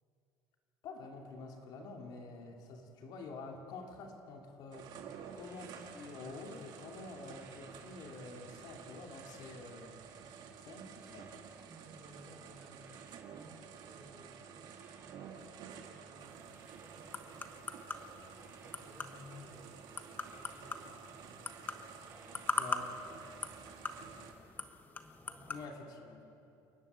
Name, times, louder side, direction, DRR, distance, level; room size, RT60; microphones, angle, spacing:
voice 1, 0.8-4.9 5.3-10.0 10.6-11.3 22.6-22.9 25.5-26.3, left 3 dB, 60° left, 2 dB, 2.7 m, -48 dB
sound 1, 4.7-24.3, right 7 dB, 60° right, 2.1 m, -52 dB
sound 2, 4.9-24.1 24.4-24.7, right 4 dB, 30° right, 3.6 m, -67 dB
voice 2, 10.2-10.6 11.5-19.9 20.3-24.5 25.0-25.7, right 1 dB, 10° right, -2 dB, 4.1 m, -60 dB
sound 3, 16.2-25.7, left 4 dB, 20° left, 1.1 m, -43 dB
29.5 x 10.5 x 9.3 m, 2.8 s
cardioid pair, 130°, 8 cm